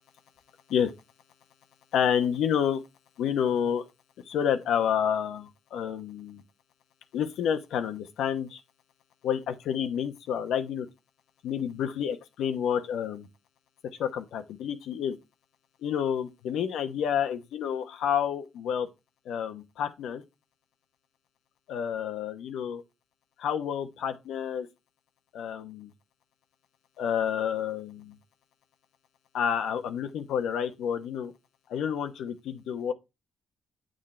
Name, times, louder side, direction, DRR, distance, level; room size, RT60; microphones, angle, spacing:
voice 1, 1.9-2.8 3.2-3.8 4.3-6.4 7.1-8.6 9.2-10.9 11.4-13.3 14.0-15.2 15.8-18.9 19.3-20.2 21.7-22.8 23.4-24.7 25.3-25.9 27.0-28.0 29.3-31.3 31.7-32.9, left 8 dB, 80° left, 0.9 m, -29 dB
8.6 x 6.5 x 3.2 m
cardioid pair, 90°, 0 cm